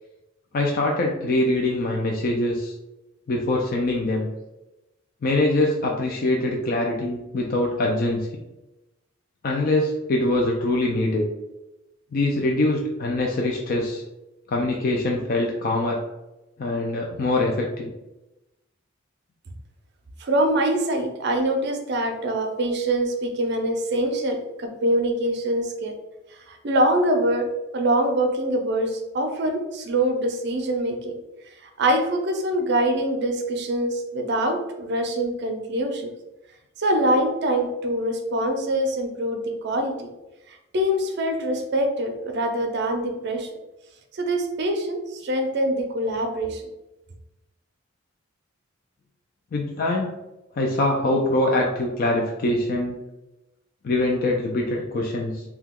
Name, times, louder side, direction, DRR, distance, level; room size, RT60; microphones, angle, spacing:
voice 1, 0.5-2.7 3.3-4.3 5.2-8.3 9.4-11.3 12.1-14.0 14.5-16.0 16.6-17.9 49.5-50.2 50.6-53.0 53.8-55.4, left 2 dB, 45° left, -1 dB, 0.3 m, -23 dB
voice 2, 20.2-25.9 26.5-27.5 27.7-31.1 31.6-36.1 36.8-40.1 40.5-43.5 44.1-46.6, right 1 dB, 55° right, 5 dB, 0.5 m, -24 dB
2.8 x 2.2 x 3.5 m, 0.98 s
head